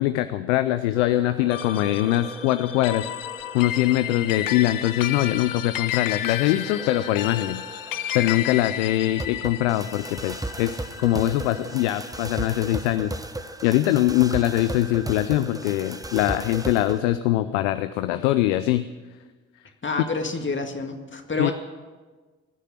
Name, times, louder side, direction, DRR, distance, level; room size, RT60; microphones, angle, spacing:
voice 1, 0.0-3.1 3.5-7.6 8.1-13.1 13.6-18.8 21.4-21.5, left 14 dB, 85° left, 12 dB, 0.5 m, -22 dB
sound 1, 1.0-17.0, right 1 dB, 10° right, 1.0 m, -37 dB
sound 2, 1.5-12.1, left 12 dB, 60° left, 0.9 m, -32 dB
voice 2, 19.8-21.5, left 3 dB, 30° left, 4 dB, 2.0 m, -28 dB
19.5 x 6.6 x 8.7 m, 1.3 s
hypercardioid pair, 45°, 37 cm